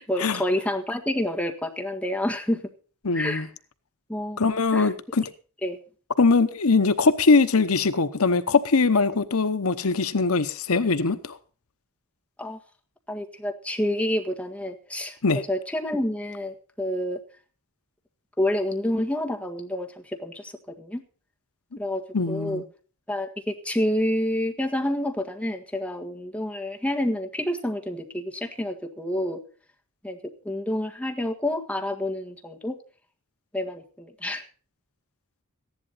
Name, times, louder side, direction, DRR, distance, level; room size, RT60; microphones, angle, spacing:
voice 1, 0.0-2.6 3.1-3.5 4.1-4.4 4.7-4.9 5.6-5.8 12.4-12.6 13.1-17.2 18.4-20.5 20.8-21.0 21.8-22.0 22.3-22.6 23.1-29.4 30.0-30.2 30.4-32.7 33.5-34.4, left 1 dB, 5° left, 1.7 m, -28 dB
voice 2, 3.0-3.5 4.4-5.2 6.2-11.4 15.2-15.4 22.1-22.6, left 4 dB, 70° left, 0.9 m, -21 dB
15.0 x 11.0 x 4.1 m
head